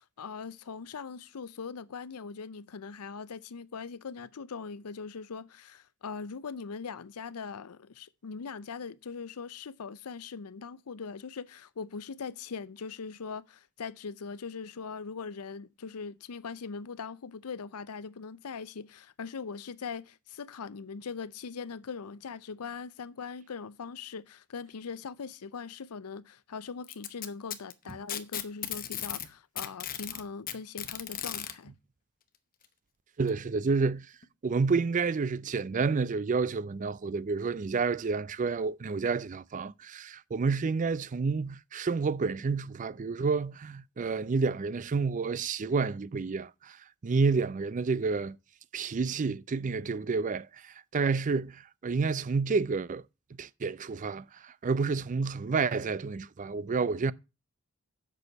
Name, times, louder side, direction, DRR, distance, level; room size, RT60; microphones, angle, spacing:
voice 1, 0.0-31.7, left 5 dB, 85° left, 0.6 m, -41 dB
Packing tape duct tape, 26.8-29.3 29.6-31.5 32.6-32.7 33.3-33.4 34.2-34.3, left 11 dB, 40° left, 0.9 m, -36 dB
voice 2, 33.2-34.1 34.4-46.8 47.0-48.4 48.7-53.0 53.4-57.1, right 4 dB, 35° right, 0.4 m, -29 dB
8.0 x 6.2 x 6.7 m
head